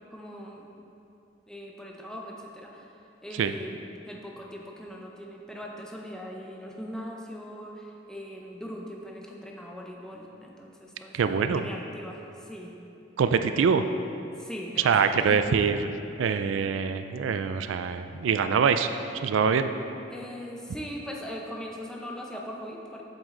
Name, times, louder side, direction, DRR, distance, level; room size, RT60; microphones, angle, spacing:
voice 1, 0.1-0.7 1.5-3.8 4.1-12.7 14.4-15.4 20.1-23.0, equal, 5° left, -1 dB, 0.7 m, -40 dB
voice 2, 11.1-11.6 13.2-13.9 14.8-15.9 16.2-18.9 19.2-19.7, right 6 dB, 80° right, 9 dB, 0.4 m, -24 dB
8.0 x 7.2 x 3.8 m, 2.8 s
head